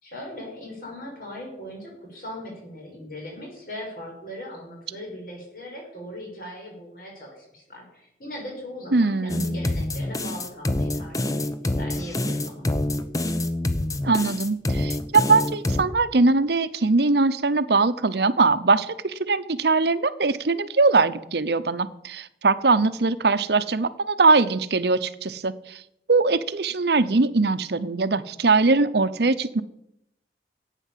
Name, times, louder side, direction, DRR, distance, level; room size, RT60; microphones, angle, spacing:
voice 1, 0.0-12.7, left 1 dB, 50° left, -1 dB, 6.4 m, -39 dB
voice 2, 8.9-9.5 14.0-25.8 26.1-29.6, right 3 dB, 70° right, 13 dB, 0.8 m, -21 dB
sound 1, 9.3-15.8, left 1 dB, 20° left, 0.8 m, -26 dB
14.0 x 9.1 x 7.5 m, 0.80 s
head